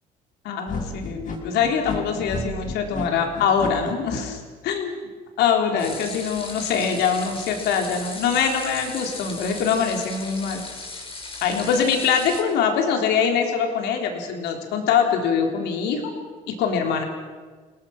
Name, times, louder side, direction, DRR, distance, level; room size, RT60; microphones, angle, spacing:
voice 1, 0.4-4.9 5.4-10.6 11.4-16.0 16.5-17.0, left 6 dB, 85° left, 3 dB, 3.8 m, -23 dB
sound 1, 0.7-4.2, left 3 dB, 50° left, 6.6 m, -31 dB
sound 2, 5.8-12.4, left 3 dB, 35° left, 6.7 m, -37 dB
30.0 x 19.5 x 6.0 m, 1.5 s
cardioid pair, 110°, 17 cm